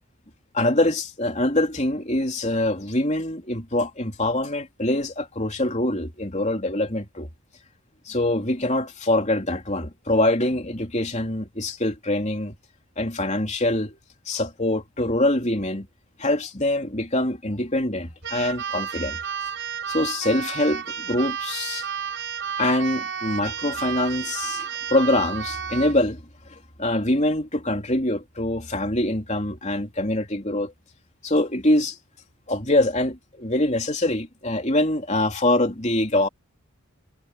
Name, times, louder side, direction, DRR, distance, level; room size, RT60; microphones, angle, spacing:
voice 1, 0.5-7.3 8.1-12.5 13.0-14.0 14.3-15.9 16.2-19.2 19.9-21.9 22.6-26.2 26.5-30.7 31.2-32.0 32.5-36.3, left 1 dB, 30° left, 3.3 m, -24 dB
Keyboard (musical), 18.2-26.0, right 7 dB, 55° right, 4.4 m, -31 dB
head